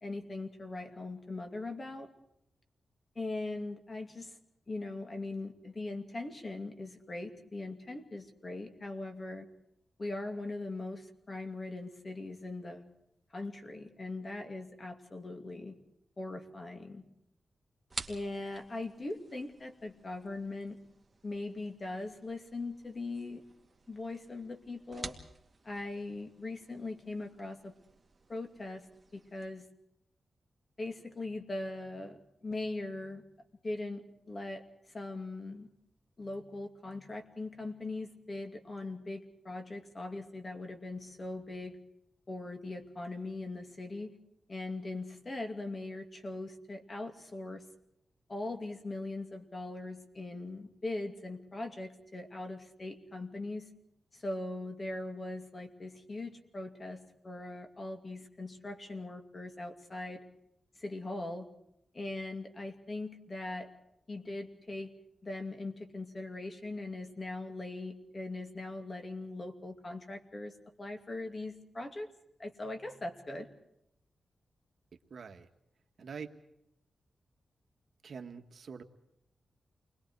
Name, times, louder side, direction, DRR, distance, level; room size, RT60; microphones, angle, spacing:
voice 1, 0.0-2.1 3.1-4.4 4.7-9.5 10.0-12.9 13.3-15.7 16.2-17.0 18.1-20.8 21.2-23.4 23.9-25.2 25.6-27.7 28.3-28.9 29.1-29.7 30.8-33.2 33.6-34.6 34.9-35.7 36.2-41.8 42.3-44.2 44.5-47.7 48.3-53.7 54.1-60.2 60.7-61.5 61.9-63.7 64.1-64.9 65.2-72.1 72.4-73.5, left 2 dB, 35° left, 5 dB, 2.8 m, -40 dB
sound 1, 17.9-29.5, right 3 dB, 30° right, 2.3 m, -51 dB
voice 2, 75.1-75.5 76.0-76.3 78.0-78.8, right 5 dB, 65° right, 5 dB, 1.8 m, -44 dB
29.0 x 21.5 x 4.8 m, 0.79 s
wide cardioid pair, 105°, 0 cm